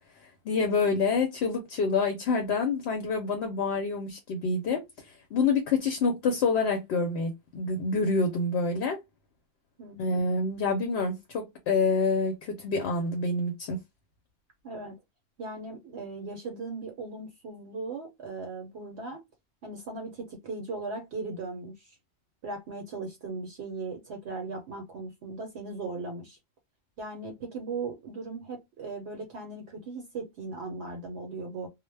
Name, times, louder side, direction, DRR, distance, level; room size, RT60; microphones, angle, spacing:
voice 1, 0.4-4.8 5.1-9.0 10.0-13.8, left 4 dB, 65° left, 0.8 m, -27 dB
voice 2, 9.8-10.2 14.6-15.0 15.4-19.2 19.6-22.0 22.4-26.4 27.0-31.7, right 3 dB, 65° right, 0.8 m, -38 dB
2.1 x 2.1 x 3.2 m
omnidirectional pair, 1.3 m